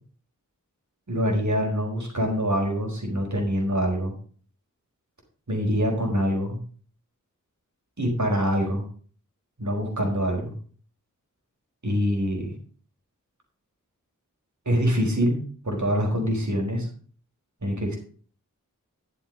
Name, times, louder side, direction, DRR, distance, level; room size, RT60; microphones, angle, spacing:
voice 1, 1.1-4.1 5.5-6.6 8.0-8.8 9.6-10.5 11.8-12.5 14.6-16.9 17.6-18.0, equal, 60° right, 1 dB, 4.8 m, -25 dB
12.0 x 7.1 x 5.3 m, 0.43 s
wide cardioid pair, 55°, 33 cm